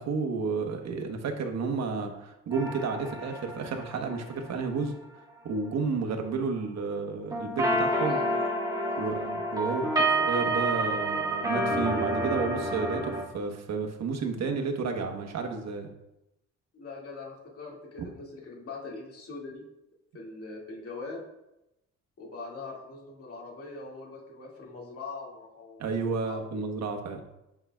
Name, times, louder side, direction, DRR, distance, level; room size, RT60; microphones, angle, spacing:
voice 1, 0.0-4.9 5.4-8.2 9.0-9.9 10.2-15.9 25.8-27.2, right 4 dB, 60° right, 4 dB, 1.2 m, -31 dB
sound 1, 2.5-4.6 7.3-13.2, right 1 dB, 15° right, 2.0 m, -29 dB
voice 2, 16.7-19.6 20.1-21.2 22.2-26.0 26.2-26.4, left 3 dB, 50° left, -2 dB, 2.3 m, -42 dB
9.4 x 5.6 x 2.4 m, 0.90 s
cardioid pair, 90°, 30 cm